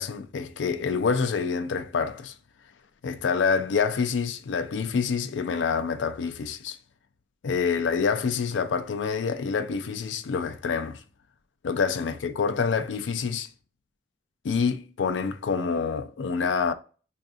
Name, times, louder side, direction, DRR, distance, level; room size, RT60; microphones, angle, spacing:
voice 1, 0.0-2.3 3.0-6.8 7.4-11.0 11.6-13.5 14.4-16.7, left 5 dB, 85° left, 0.4 m, -27 dB
3.5 x 2.5 x 2.3 m
head